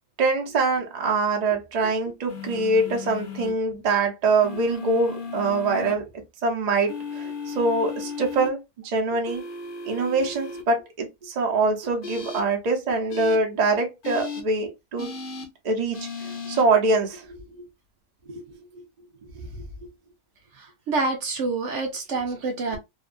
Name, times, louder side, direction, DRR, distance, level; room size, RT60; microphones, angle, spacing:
voice 1, 0.2-6.1 6.4-9.4 9.8-15.1 15.6-17.6 18.3-18.4 18.8-18.9 19.4-19.6 22.7-22.8, right 3 dB, 45° right, 0.5 m, -24 dB
sound 1, 2.3-3.5 4.4-5.9 6.9-8.5 9.2-10.6 12.0-12.4 13.1-13.4 14.0-14.4 15.0-15.5 15.9-16.6, left 4 dB, 45° left, 0.7 m, -35 dB
voice 2, 20.6-22.8, right 3 dB, 60° right, 0.9 m, -27 dB
2.7 x 2.2 x 2.4 m
omnidirectional pair, 1.6 m